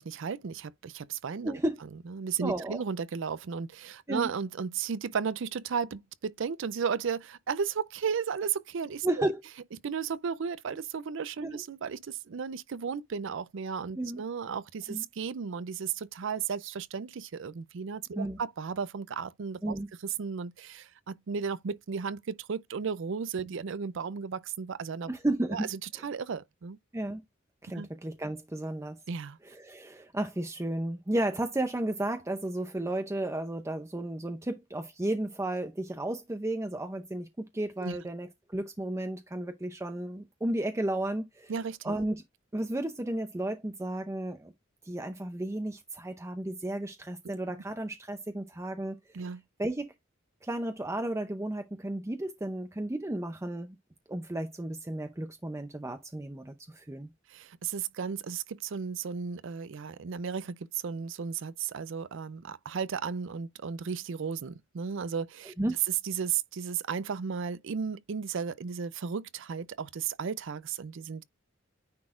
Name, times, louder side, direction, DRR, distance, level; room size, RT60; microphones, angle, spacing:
voice 1, 0.0-1.6 2.1-9.3 9.8-25.1 25.5-26.8 27.7-27.9 29.1-29.4 37.8-38.0 41.5-42.0 49.1-49.4 57.3-65.5 66.0-71.2, right 6 dB, 70° right, 0.5 m, -34 dB
voice 2, 1.4-1.8 2.4-2.8 4.1-4.3 9.0-9.4 11.4-11.6 14.0-14.2 14.9-15.0 18.1-18.4 19.6-19.9 25.1-25.7 26.0-26.1 26.9-27.2 27.6-29.0 29.4-41.5 41.8-42.2 42.5-44.5 44.8-49.2 49.6-49.9 50.4-53.8 54.1-57.1 65.6-65.8, right 1 dB, 15° right, 0.6 m, -33 dB
9.6 x 4.0 x 2.5 m
head